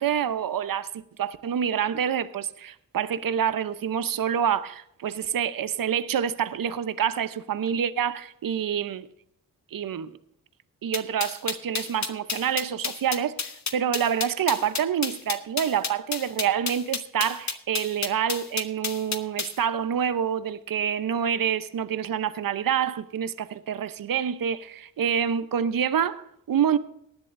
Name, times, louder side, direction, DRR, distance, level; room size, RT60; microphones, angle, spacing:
voice 1, 0.0-9.1 9.7-10.2 10.8-26.8, right 8 dB, 60° right, 0.9 m, -27 dB
sound 1, 10.9-19.6, left 5 dB, 45° left, 1.4 m, -30 dB
18.5 x 11.0 x 2.7 m
supercardioid pair, 50°, 39 cm